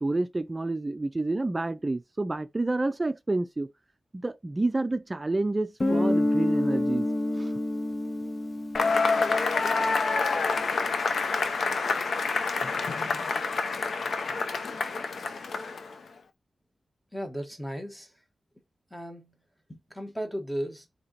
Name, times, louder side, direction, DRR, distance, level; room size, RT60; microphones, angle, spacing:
voice 1, 0.0-3.7 4.1-7.1 7.3-7.5, right 2 dB, 25° right, 0.5 m, -29 dB
Guitar, 5.8-10.4, left 1 dB, 30° left, 0.7 m, -28 dB
Cheering / Applause / Crowd, 8.7-16.0, left 4 dB, 75° left, 0.6 m, -27 dB
voice 2, 17.1-18.1 18.9-19.4 19.7-20.9, equal, 5° left, 1.3 m, -35 dB
4.4 x 2.9 x 4.0 m
wide cardioid pair, 100°, 0 cm